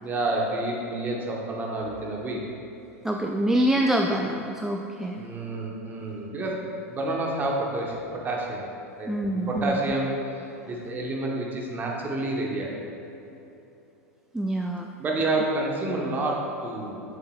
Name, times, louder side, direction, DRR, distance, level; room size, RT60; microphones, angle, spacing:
voice 1, 0.0-2.4 5.2-8.7 9.0-12.9 15.0-17.0, right 2 dB, 25° right, -1 dB, 1.2 m, -29 dB
voice 2, 3.0-5.2 9.1-9.8 14.3-14.9, right 1 dB, 5° right, 1 dB, 0.3 m, -25 dB
7.2 x 7.1 x 2.4 m, 3.0 s
hypercardioid pair, 90°, 8 cm